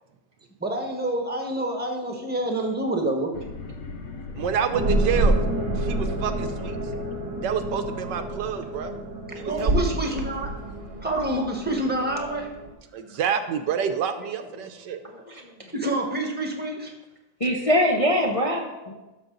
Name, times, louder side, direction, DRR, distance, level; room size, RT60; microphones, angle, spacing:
voice 1, 0.6-3.4 9.5-10.7 11.0-12.5 15.7-16.9, right 1 dB, 5° right, 2 dB, 1.2 m, -27 dB
sound 1, 3.3-8.1, left 4 dB, 60° left, 1.3 m, -38 dB
voice 2, 4.3-5.3 5.8-6.8 7.4-8.9 9.3-10.2 12.9-15.0, right 8 dB, 90° right, 8 dB, 1.4 m, -28 dB
sound 2, 4.7-12.7, right 1 dB, 35° right, 1.2 m, -28 dB
voice 3, 15.0-15.7 17.4-18.9, equal, 30° left, -1 dB, 0.6 m, -24 dB
11.5 x 6.8 x 4.0 m, 1.0 s
omnidirectional pair, 1.8 m